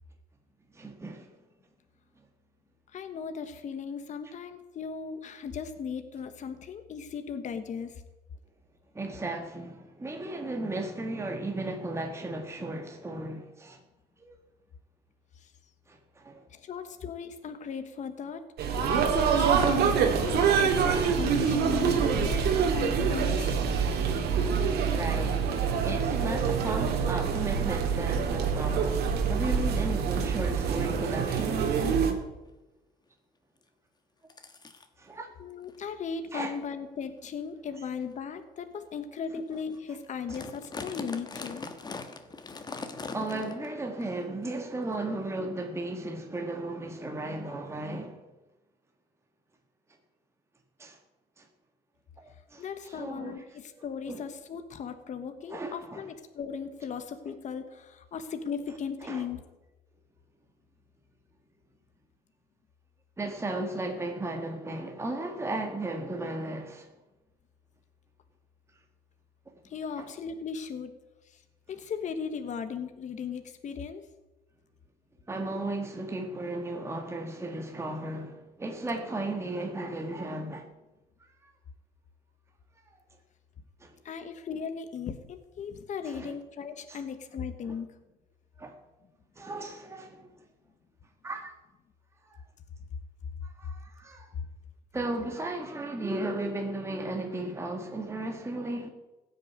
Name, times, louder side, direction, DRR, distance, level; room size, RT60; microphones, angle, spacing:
voice 1, 0.7-1.3 8.9-13.8 14.2-14.4 15.9-16.4 24.9-32.1 35.0-35.3 36.3-36.6 40.3-40.4 43.1-48.2 50.8-51.0 51.4-51.5 52.2-53.3 54.1-54.2 55.5-56.1 59.0-59.2 63.2-66.9 70.0-70.1 75.3-80.7 81.4-81.5 83.8-83.9 86.0-86.4 86.9-87.0 87.7-87.8 88.6-88.7 89.4-90.3 91.2-91.5 92.3-92.4 93.4-94.3 94.9-98.9, right 2 dB, 15° right, 1.6 m, -35 dB
voice 2, 2.9-8.0 15.3-15.5 16.5-18.4 18.8-23.6 35.4-41.6 52.6-59.4 69.6-71.0 71.2-71.4 71.7-74.1 84.0-87.9, left 6 dB, 45° left, 1.3 m, -37 dB
sound 1, 18.6-32.1, right 6 dB, 70° right, 2.3 m, -26 dB
sound 2, 32.2-32.5 33.6-33.7 34.3-34.9 35.6-35.8 36.4-36.6 37.2-37.3 38.0-38.1 38.7-38.8 39.2-39.3 39.5-39.8 40.0-43.7 44.0-44.1 44.9-45.0, left 3 dB, 25° left, 1.4 m, -41 dB
15.5 x 6.7 x 9.3 m
cardioid pair, 110°, 17 cm